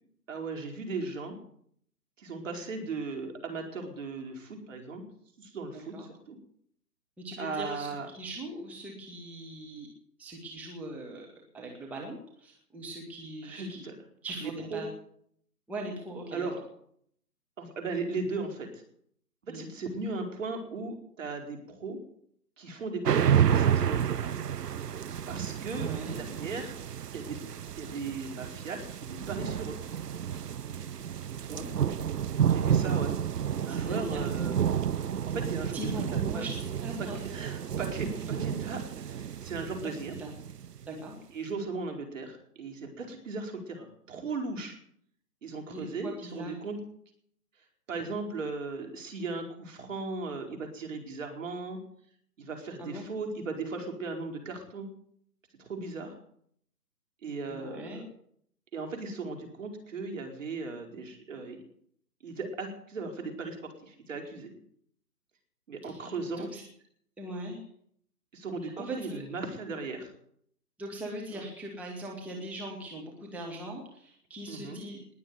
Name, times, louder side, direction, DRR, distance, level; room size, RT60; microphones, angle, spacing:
voice 1, 0.3-1.4 2.2-5.0 5.4-6.4 7.4-8.1 13.4-13.9 14.4-14.9 16.3-16.6 17.6-18.8 19.4-22.0 22.6-24.3 25.3-26.8 27.1-27.4 27.8-29.8 31.4-31.7 32.5-33.1 33.6-34.6 35.3-36.4 37.0-40.1 41.3-44.8 45.4-46.8 47.9-51.8 52.4-54.9 55.6-56.2 57.2-58.0 58.7-61.6 62.2-64.5 65.7-66.5 68.3-70.1 71.3-71.4 74.5-74.8, right 3 dB, 50° right, 3 dB, 4.6 m, -37 dB
voice 2, 5.7-6.0 7.2-7.9 8.1-9.9 10.2-13.8 14.2-14.9 15.7-16.5 19.5-19.6 25.7-26.2 31.3-31.7 33.7-34.2 35.7-37.3 40.2-40.3 40.9-41.1 45.7-46.6 52.8-53.1 57.5-58.0 65.8-66.6 67.2-67.6 68.6-69.2 70.8-75.0, right 1 dB, 5° right, -1 dB, 1.6 m, -40 dB
sound 1, 23.0-40.9, right 9 dB, 75° right, 0.7 m, -30 dB
20.0 x 7.5 x 9.6 m, 0.65 s
figure-of-eight pair, 140°, 48 cm